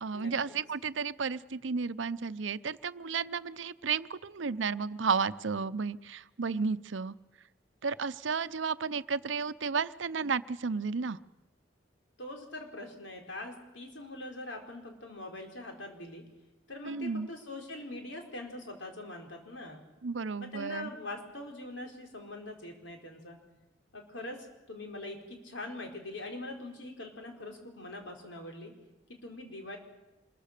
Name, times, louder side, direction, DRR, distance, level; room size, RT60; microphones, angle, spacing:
voice 1, 0.0-7.2 7.8-11.2 16.8-17.3 20.0-20.9, right 5 dB, 80° right, 15 dB, 0.7 m, -33 dB
voice 2, 12.2-16.2 16.7-19.8 20.4-23.4 23.9-28.7 29.2-29.8, left 2 dB, 80° left, 3 dB, 4.5 m, -43 dB
25.5 x 22.0 x 6.7 m, 1.1 s
head